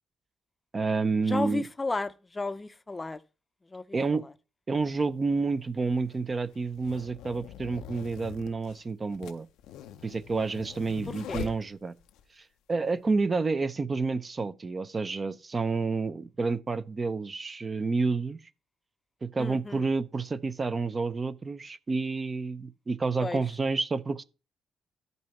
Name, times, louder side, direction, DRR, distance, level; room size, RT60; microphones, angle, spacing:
voice 1, 0.7-1.7 3.9-4.2 4.7-9.5 10.0-11.9 12.4-18.4 19.2-24.2, right 4 dB, 30° right, 0.6 m, -29 dB
voice 2, 1.3-3.2 3.7-4.3 11.1-11.5 19.4-19.8 23.2-23.4, left 3 dB, 20° left, 0.5 m, -33 dB
sound 1, 4.8-4.9 5.8-12.2, left 9 dB, 90° left, 0.5 m, -44 dB
14.0 x 5.4 x 3.0 m
cardioid pair, 90°, 0 cm